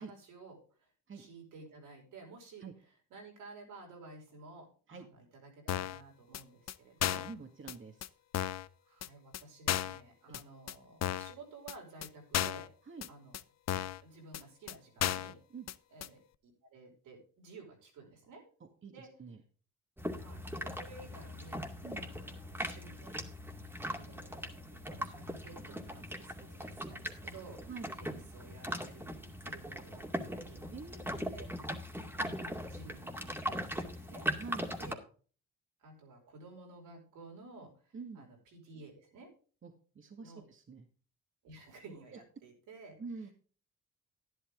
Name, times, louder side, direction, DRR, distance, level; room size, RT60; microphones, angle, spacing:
voice 1, 0.0-2.7 3.1-7.3 8.9-12.7 13.1-13.4 14.0-15.4 15.9-18.4 18.9-19.1 20.1-23.2 23.9-30.7 31.3-31.5 32.1-34.3 34.8-35.0 35.8-39.3 40.2-40.4 41.4-43.0, right 3 dB, 80° right, 1 dB, 5.5 m, -53 dB
sound 1, 5.7-6.0 6.3-6.4 6.7-6.8 7.0-7.3 7.7-7.8 8.0-8.1 8.3-8.7 9.0-9.1 9.3-9.4 9.7-10.0 10.3-10.4 10.7-10.8 11.0-11.3 11.7-11.8 12.0-12.1 12.3-12.7 13.0-13.1 13.3-13.4 13.7-14.0 14.3-14.4 14.7-14.8 15.0-15.3 15.7-15.8 16.0-16.1, left 11 dB, 55° left, 0.7 m, -34 dB
voice 2, 7.1-8.1 10.3-10.4 12.9-13.1 15.5-15.7 18.8-18.9 19.2-19.4 21.8-22.1 27.7-27.9 30.7-31.4 34.4-34.7 37.9-38.2 39.6-40.9 42.1-42.2 43.0-43.3, right 4 dB, 40° right, 4 dB, 2.0 m, -46 dB
sound 2, 20.0-34.9, equal, 5° right, 2.3 m, -40 dB
11.5 x 11.0 x 3.7 m, 0.39 s
supercardioid pair, 70°, 32 cm